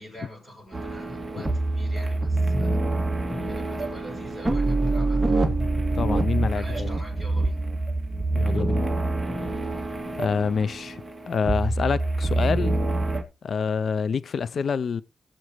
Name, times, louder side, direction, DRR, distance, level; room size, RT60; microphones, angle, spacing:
voice 1, 0.0-2.8 3.5-5.5 6.5-7.6 8.6-8.7, equal, 15° left, 7.4 m, -43 dB
sound 1, 0.7-13.2, right 2 dB, 10° right, 2.2 m, -26 dB
voice 2, 5.9-6.9 8.3-8.8 10.2-11.0 11.3-12.8 13.4-15.0, left 6 dB, 60° left, 0.5 m, -26 dB
19.5 x 7.5 x 3.1 m
cardioid pair, 85°, 0 cm